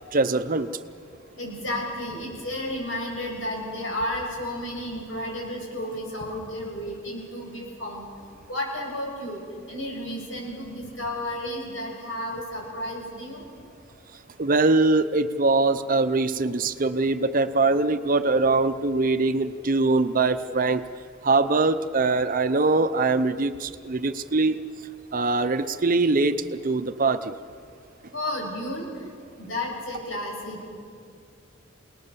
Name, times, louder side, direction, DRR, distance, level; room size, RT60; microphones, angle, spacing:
voice 1, 0.1-0.8 14.4-20.9 21.2-24.6 25.1-27.3, right 3 dB, 45° right, 11 dB, 0.7 m, -22 dB
voice 2, 1.3-9.4 9.7-13.4 28.1-28.9 29.4-30.7, left 1 dB, 75° left, -1 dB, 6.8 m, -32 dB
27.5 x 19.0 x 6.9 m, 2.3 s
head